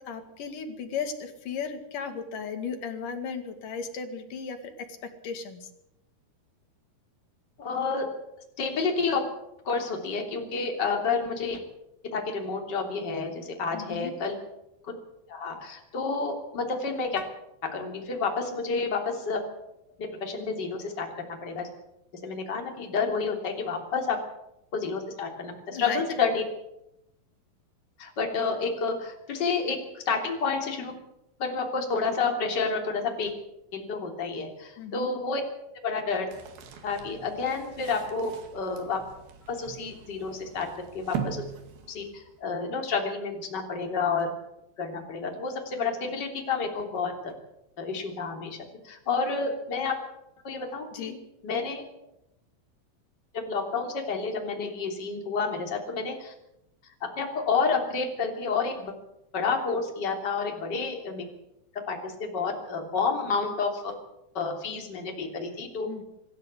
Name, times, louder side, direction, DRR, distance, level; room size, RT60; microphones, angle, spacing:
voice 1, 0.0-5.7 13.7-14.1 25.7-26.0 34.8-35.1 50.9-51.2 65.9-66.0, left 6 dB, 60° left, 7 dB, 3.6 m, -35 dB
voice 2, 7.6-8.1 8.6-9.2 9.6-11.6 12.1-14.4 14.9-15.0 15.3-17.3 17.6-19.4 20.0-21.7 22.2-24.2 24.7-26.4 28.0-30.9 31.4-33.3 33.7-35.4 35.8-36.3 36.8-39.0 39.5-40.7 40.9-41.4 41.9-44.3 44.8-47.3 47.8-48.6 48.8-50.0 50.4-51.1 51.4-51.8 53.3-56.3 57.0-58.9 59.3-61.2 61.9-63.9 64.3-65.9, left 4 dB, 30° left, 2 dB, 3.4 m, -30 dB
sound 1, 36.3-42.5, right 7 dB, 75° right, 3.9 m, -41 dB
25.0 x 13.0 x 8.3 m, 0.84 s
omnidirectional pair, 4.3 m